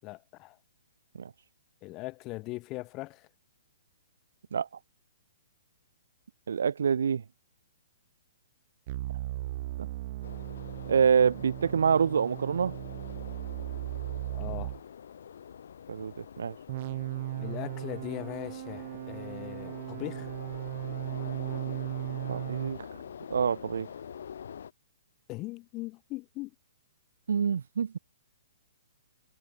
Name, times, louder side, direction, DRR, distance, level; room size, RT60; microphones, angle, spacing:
voice 1, 0.0-0.6 1.8-3.3 14.3-14.8 17.4-20.3 25.3-26.5, left 21 dB, 25° left, 7.9 m, -40 dB
voice 2, 6.5-7.2 9.8-9.9 10.9-12.8 15.9-16.5 22.3-22.8 23.3-23.9 27.3-28.0, right 7 dB, 80° right, 0.9 m, -26 dB
sound 1, 8.9-14.8 16.7-22.8, right 16 dB, 40° right, 2.7 m, -37 dB
sound 2, 10.2-24.7, left 8 dB, 70° left, 6.1 m, -45 dB
hypercardioid pair, 165°, 0 cm